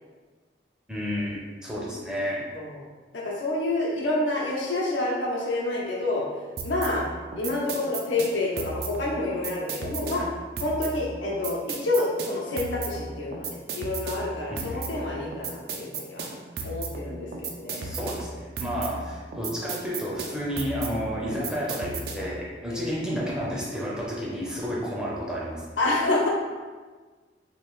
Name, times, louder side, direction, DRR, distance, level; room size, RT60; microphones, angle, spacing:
voice 1, 0.9-2.4 14.5-14.8 17.7-25.6, equal, 5° right, -6 dB, 0.5 m, -31 dB
voice 2, 3.1-6.2 6.6-7.0 7.4-10.3 10.6-16.3 16.6-17.9 22.7-22.9 25.8-26.3, left 2 dB, 90° left, -4 dB, 0.8 m, -28 dB
sound 1, 6.6-22.4, right 3 dB, 60° right, 0.4 m, -35 dB
3.0 x 2.6 x 3.6 m, 1.4 s
head